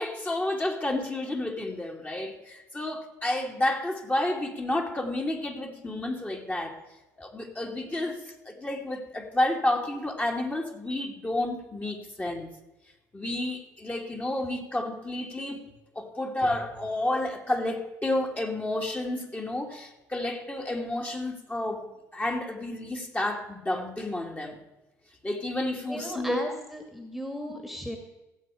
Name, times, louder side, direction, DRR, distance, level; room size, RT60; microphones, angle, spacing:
voice 1, 0.0-6.8 7.2-12.5 13.1-24.6 25.2-26.4, left 1 dB, 20° left, 1 dB, 2.4 m, -30 dB
voice 2, 25.9-28.0, equal, ahead, 4 dB, 2.0 m, -36 dB
16.5 x 7.9 x 5.0 m, 1.0 s
hypercardioid pair, 55°, 9 cm